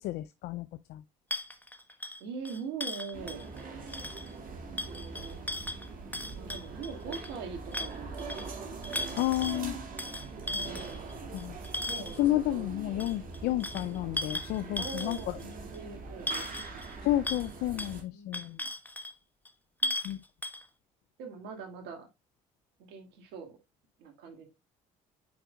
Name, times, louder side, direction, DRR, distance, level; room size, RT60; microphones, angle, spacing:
voice 1, 0.0-1.0 9.2-9.8 11.3-11.6 12.2-15.4 17.0-18.6 20.0-20.2, left 15 dB, 70° left, 0.4 m, -31 dB
sound 1, 1.3-3.6 3.9-4.3 4.8-7.3 7.7-8.5 8.8-9.6 10.0-12.2 13.0-15.4 15.7-15.8 16.3-16.9 17.2-17.5 17.8-17.9 18.3-19.1 19.4-19.5 19.8-20.1 20.4-20.6, left 1 dB, 10° left, 1.1 m, -37 dB
voice 2, 2.2-3.4 4.5-5.4 6.4-8.2 8.9-9.7 10.4-11.1 11.8-12.7 14.8-16.7 18.1-18.7 19.8-19.9 21.2-22.1 22.8-23.6 24.0-24.5, right 5 dB, 80° right, 2.2 m, -43 dB
sound 2, 3.1-18.0, right 4 dB, 55° right, 2.3 m, -42 dB
8.5 x 5.4 x 2.3 m
supercardioid pair, 65°, 18 cm